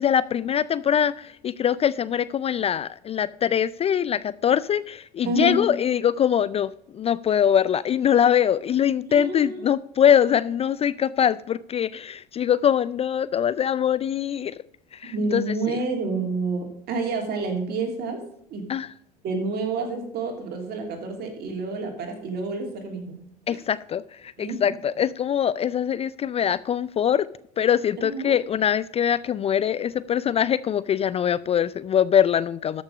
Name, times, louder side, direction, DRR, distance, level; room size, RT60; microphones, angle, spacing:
voice 1, 0.0-6.7 6.9-14.5 15.0-15.4 18.7-18.9 23.5-27.3 27.6-32.8, left 9 dB, 30° left, 18 dB, 0.4 m, -23 dB
voice 2, 5.2-5.7 9.1-9.6 15.1-18.2 18.5-18.7 19.2-23.2 23.5-23.6 24.4-24.7 28.0-28.4, right 3 dB, 50° right, 3 dB, 2.9 m, -28 dB
13.0 x 6.3 x 5.1 m, 0.71 s
figure-of-eight pair, 65°, 21 cm